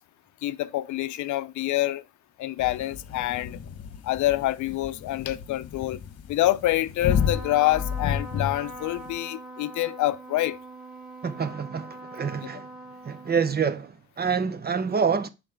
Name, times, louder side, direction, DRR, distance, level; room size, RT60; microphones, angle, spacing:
voice 1, 0.4-2.0 2.4-3.6 4.0-6.0 6.3-10.6 12.4-12.5, left 15 dB, 75° left, 0.5 m, -26 dB
sound 1, 2.6-9.2, left 8 dB, 55° left, 1.1 m, -32 dB
Trumpet, 7.0-13.9, right 2 dB, 5° right, 2.1 m, -42 dB
voice 2, 11.2-12.7 13.1-15.3, right 6 dB, 35° right, 0.7 m, -27 dB
5.6 x 4.8 x 4.9 m
cardioid pair, 90°, 30 cm